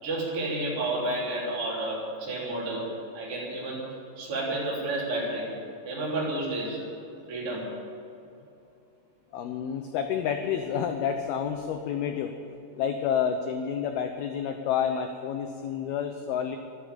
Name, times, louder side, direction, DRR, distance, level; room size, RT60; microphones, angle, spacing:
voice 1, 0.0-3.9 4.2-5.5 5.8-6.8 7.3-7.7, right 2 dB, 30° right, -7 dB, 4.0 m, -31 dB
voice 2, 9.3-12.3 12.8-16.6, left 8 dB, 75° left, 6 dB, 2.3 m, -29 dB
13.0 x 12.0 x 9.0 m, 2.7 s
omnidirectional pair, 5.4 m